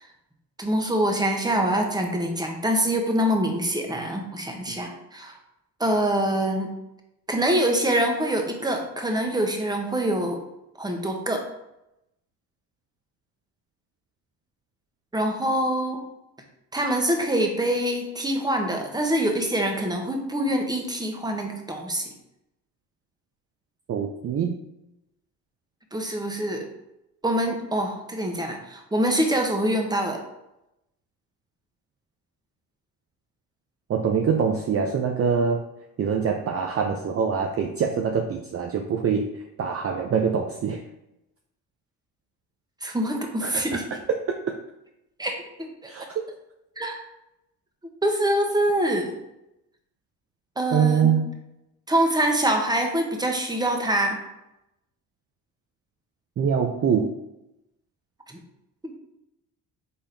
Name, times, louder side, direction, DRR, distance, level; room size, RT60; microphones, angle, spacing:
voice 1, 0.6-5.4 5.8-6.7 7.3-10.4 10.8-11.4 15.1-16.0 16.7-22.1 25.9-26.7 27.2-30.2 42.8-43.8 45.2-45.9 46.8-47.0 48.0-49.1 50.6-51.2 51.9-54.2 58.3-58.4 58.8-58.9, right 1 dB, 10° right, 3 dB, 1.0 m, -25 dB
voice 2, 23.9-24.5 33.9-35.6 36.0-39.3 39.6-40.8 43.4-43.8 44.3-44.4 45.9-46.1 50.7-51.3 56.4-57.1, right 6 dB, 35° right, 3 dB, 0.5 m, -24 dB
4.3 x 3.5 x 3.3 m, 0.88 s
supercardioid pair, 60°, 41 cm